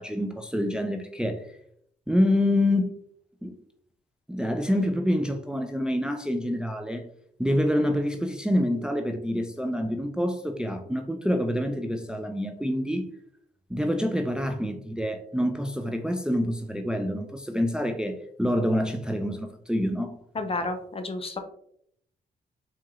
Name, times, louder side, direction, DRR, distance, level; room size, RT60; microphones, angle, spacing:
voice 1, 0.0-1.4 2.1-3.0 3.4-3.5 4.3-7.1 7.4-13.1 13.7-20.1, left 1 dB, 5° right, 0.5 m, -27 dB
voice 2, 20.3-21.4, left 2 dB, 35° left, 0.6 m, -31 dB
4.6 x 2.9 x 2.4 m
cardioid pair, 60°, 17 cm